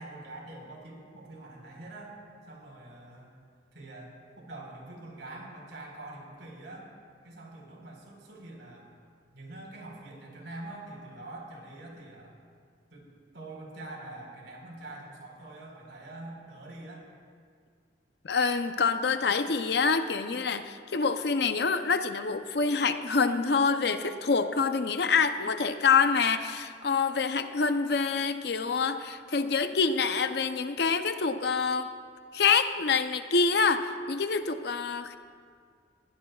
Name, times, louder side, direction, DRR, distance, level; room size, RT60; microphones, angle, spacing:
voice 1, 0.0-3.3 3.7-6.9 7.2-8.9 9.3-12.4 12.9-17.0, right 2 dB, 80° right, -2 dB, 4.4 m, -45 dB
voice 2, 18.2-31.9 32.3-35.2, left 5 dB, 60° left, 9 dB, 0.6 m, -26 dB
21.5 x 16.5 x 2.4 m, 2.1 s
head